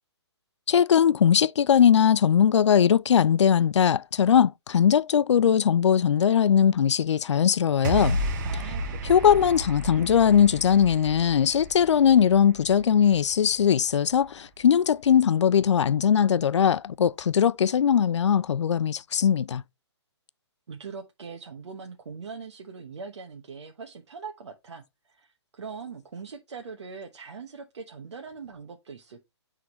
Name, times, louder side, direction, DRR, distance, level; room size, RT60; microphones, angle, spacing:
voice 1, 0.7-8.2 9.1-19.6, left 8 dB, 80° left, 0.4 m, -20 dB
sound 1, 7.8-14.3, right 2 dB, 40° right, 1.2 m, -33 dB
voice 2, 8.4-9.6 20.7-29.3, right 5 dB, 75° right, 1.1 m, -41 dB
9.4 x 3.7 x 3.1 m
hypercardioid pair, 150°, 15 cm